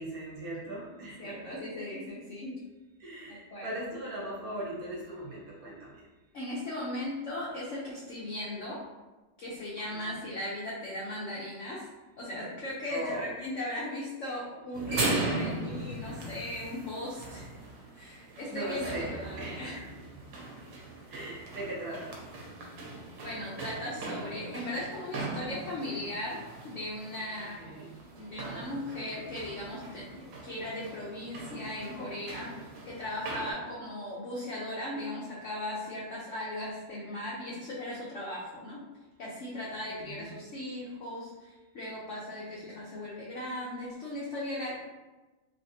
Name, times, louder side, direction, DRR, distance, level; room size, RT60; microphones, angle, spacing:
voice 1, 0.0-1.5 3.0-6.0 9.9-10.1 12.9-13.3 18.5-20.0 21.1-22.2 27.4-27.9 39.9-40.4, right 1 dB, 60° right, -5 dB, 1.2 m, -39 dB
voice 2, 1.2-2.6 3.3-3.7 6.3-8.8 9.4-11.9 12.2-17.5 17.9-19.8 23.2-27.7 28.2-38.8 39.2-44.8, left 1 dB, 80° left, -5 dB, 0.6 m, -38 dB
sound 1, 14.7-33.5, right 2 dB, 85° right, 1.4 m, -39 dB
3.4 x 2.5 x 2.6 m, 1.2 s
omnidirectional pair, 2.0 m